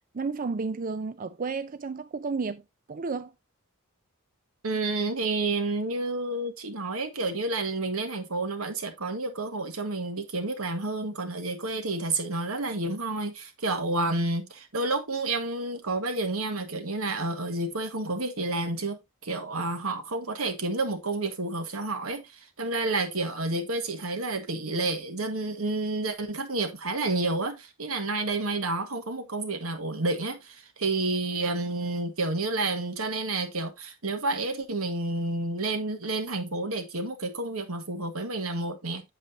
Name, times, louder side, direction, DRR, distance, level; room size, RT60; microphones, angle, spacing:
voice 1, 0.1-2.6 2.9-3.3, right 4 dB, 40° right, 0.5 m, -32 dB
voice 2, 4.6-39.0, right 2 dB, 85° right, 1.6 m, -30 dB
8.3 x 7.6 x 2.7 m
head